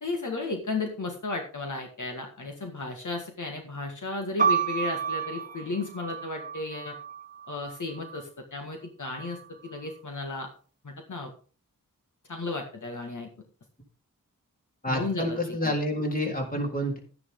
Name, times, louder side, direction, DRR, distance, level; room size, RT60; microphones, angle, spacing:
voice 1, 0.0-7.0 7.5-10.5 10.8-11.3 12.3-13.3 14.9-15.7, left 3 dB, 60° left, 3 dB, 1.9 m, -34 dB
sound 1, 4.4-8.2 9.1-9.8, right 6 dB, 25° right, 1.5 m, -31 dB
voice 2, 14.8-17.0, equal, 25° left, 1 dB, 3.8 m, -28 dB
12.0 x 10.0 x 3.8 m, 0.38 s
wide cardioid pair, 90°, 33 cm